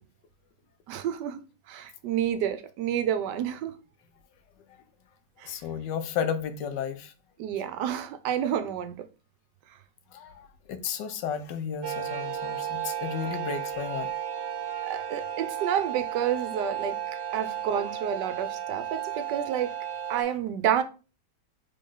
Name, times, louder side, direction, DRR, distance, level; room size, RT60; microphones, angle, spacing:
voice 1, 0.9-1.4 1.7-3.7 5.4-5.6 7.4-8.9 14.8-17.0 17.3-19.7 20.1-20.8, right 9 dB, 75° right, 1.2 m, -29 dB
voice 2, 5.4-7.1 10.1-14.1, left 7 dB, 75° left, 1.3 m, -33 dB
sound 1, 11.8-20.2, right 10 dB, 55° right, 1.2 m, -34 dB
3.8 x 3.7 x 3.7 m
omnidirectional pair, 2.0 m